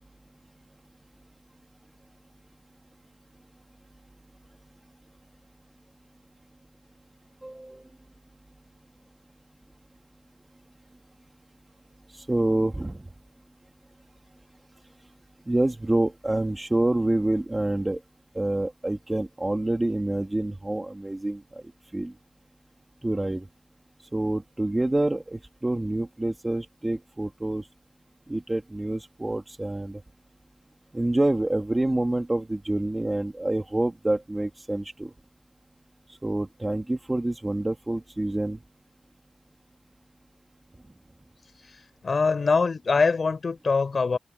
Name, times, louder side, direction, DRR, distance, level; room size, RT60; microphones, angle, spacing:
voice 1, 7.4-7.8 12.1-13.0 15.5-18.0 18.4-21.4 21.9-22.1 23.0-23.5 24.1-27.7 28.3-30.0 30.9-35.1 36.2-38.6, right 1 dB, 20° right, 2.1 m, -27 dB
voice 2, 41.6-44.2, left 4 dB, 60° left, 3.9 m, -24 dB
wide cardioid pair, 105°, 0 cm